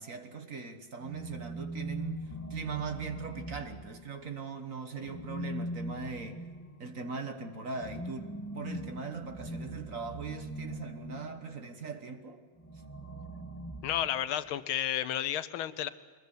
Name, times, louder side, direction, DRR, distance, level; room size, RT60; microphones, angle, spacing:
voice 1, 0.0-6.4 6.8-12.4, right 5 dB, 45° right, 1.6 m, -40 dB
sound 1, 1.0-4.3 5.0-11.6 12.6-14.5, equal, 10° left, 1.0 m, -41 dB
voice 2, 13.8-15.9, left 11 dB, 85° left, 1.7 m, -32 dB
23.5 x 20.5 x 8.2 m
omnidirectional pair, 2.2 m